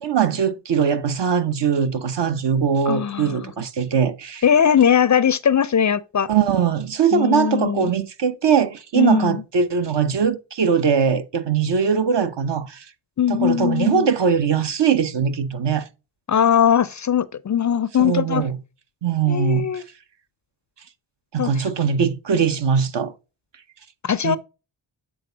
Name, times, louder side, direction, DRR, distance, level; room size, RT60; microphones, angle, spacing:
voice 1, 0.0-4.4 6.3-12.8 13.3-15.9 18.0-18.6 19.0-19.8 21.3-23.1 24.2-24.4, right 7 dB, 60° right, 1.0 m, -21 dB
voice 2, 2.9-3.5 4.4-6.3 7.1-7.9 9.0-9.4 13.2-14.1 16.3-18.4 19.3-19.8 21.4-21.7 24.0-24.4, left 8 dB, 40° left, 0.4 m, -20 dB
7.7 x 3.5 x 3.9 m
cardioid pair, 65°, 48 cm